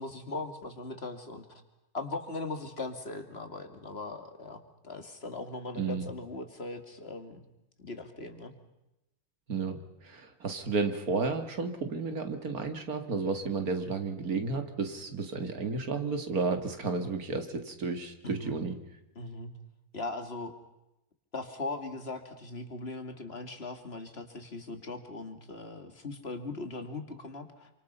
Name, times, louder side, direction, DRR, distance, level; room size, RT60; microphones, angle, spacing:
voice 1, 0.0-1.6 1.9-7.5 7.8-8.5 18.2-18.6 19.2-19.5 19.9-20.5 21.3-27.7, left 3 dB, 45° left, 7 dB, 2.6 m, -39 dB
voice 2, 5.8-6.1 9.5-18.7, right 4 dB, 90° right, 7 dB, 2.6 m, -32 dB
28.0 x 25.5 x 5.6 m, 0.92 s
omnidirectional pair, 1.5 m